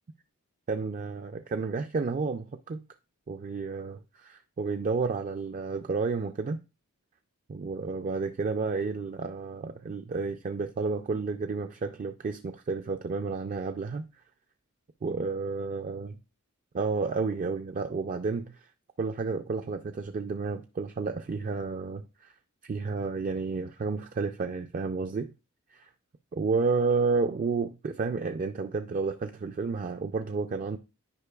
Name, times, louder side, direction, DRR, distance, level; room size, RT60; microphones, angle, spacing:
voice 1, 0.7-2.8 3.3-6.6 7.5-14.0 15.0-16.1 16.7-18.7 19.0-22.3 22.6-25.3 25.7-25.9 26.3-30.8, right 4 dB, 35° right, 0.4 m, -31 dB
9.7 x 5.1 x 2.3 m
head